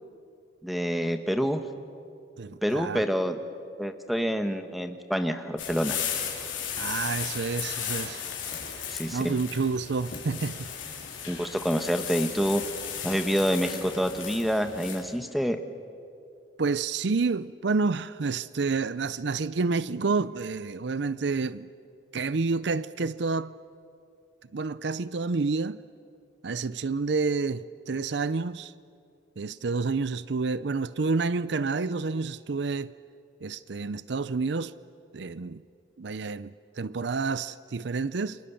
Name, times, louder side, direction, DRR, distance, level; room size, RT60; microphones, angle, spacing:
voice 1, 0.6-1.6 2.6-3.4 3.8-6.0 8.9-9.4 11.3-12.6 13.0-15.6, equal, ahead, 1.3 m, -27 dB
voice 2, 2.4-3.0 6.8-8.3 9.1-10.7 16.6-21.7 22.1-23.5 24.5-25.8 26.4-28.7 29.4-32.9 33.4-34.7 35.1-35.6 36.0-38.4, right 4 dB, 65° right, 0.5 m, -29 dB
sound 1, 5.6-15.0, left 8 dB, 90° left, 5.0 m, -35 dB
30.0 x 26.0 x 7.1 m
head